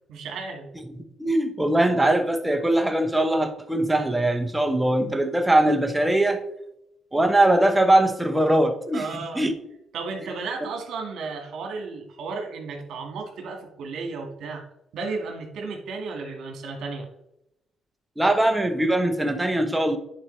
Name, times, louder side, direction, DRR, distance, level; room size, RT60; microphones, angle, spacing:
voice 1, 0.1-0.7 8.9-9.4 9.9-14.6 14.9-17.1, right 4 dB, 75° right, 2 dB, 1.8 m, -33 dB
voice 2, 1.2-6.4 7.1-9.5 18.2-20.0, right 1 dB, 10° right, 6 dB, 1.1 m, -21 dB
10.5 x 4.5 x 3.3 m, 0.83 s
cardioid pair, 90°, 0 cm